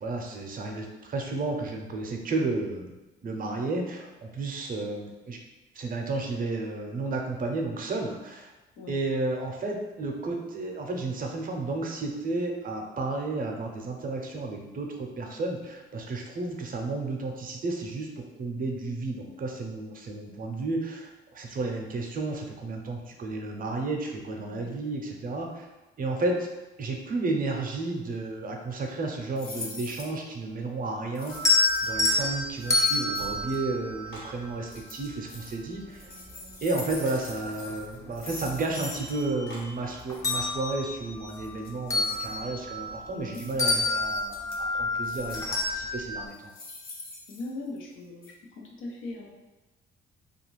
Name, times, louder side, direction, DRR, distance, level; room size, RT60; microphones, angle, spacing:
voice 1, 0.0-2.9 3.2-5.4 5.7-8.5 8.9-25.7 26.0-26.5 26.8-31.4 31.8-36.1 36.6-46.5, right 3 dB, 45° right, 2 dB, 0.6 m, -32 dB
sound 1, 29.4-30.2 31.1-32.0 32.6-33.6 34.7-35.6 35.9-39.2 39.5-39.6 39.9-40.2 41.3-42.3 43.3-43.5 43.9-44.6 45.0-45.6 46.3-47.9 48.2-48.3, left 3 dB, 50° left, 0.7 m, -44 dB
sound 2, 31.3-34.7 36.3-36.4 36.9-38.1 38.5-39.7 40.1-43.3 43.6-46.3, left 2 dB, 15° left, 0.5 m, -28 dB
sound 3, 32.1-32.7 33.1-34.4 37.0-37.3 39.4-39.8, left 1 dB, 70° left, 1.2 m, -47 dB
voice 2, 43.1-43.4 47.3-48.4 48.8-49.3, left 2 dB, 85° left, -2 dB, 0.7 m, -39 dB
2.7 x 2.4 x 3.1 m, 1.1 s
cardioid pair, 90°, 20 cm